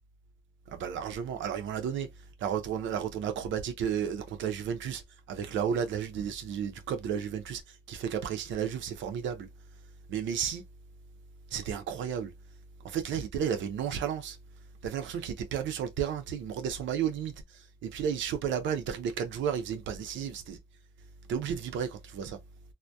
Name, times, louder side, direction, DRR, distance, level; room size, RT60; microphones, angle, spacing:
voice 1, 0.7-2.1 2.4-5.0 5.3-9.5 10.1-10.6 11.5-12.3 12.8-14.4 14.8-20.6 21.3-22.4, right 8 dB, 80° right, 0.5 m, -33 dB
2.6 x 2.1 x 2.2 m
cardioid pair, 85°, 20 cm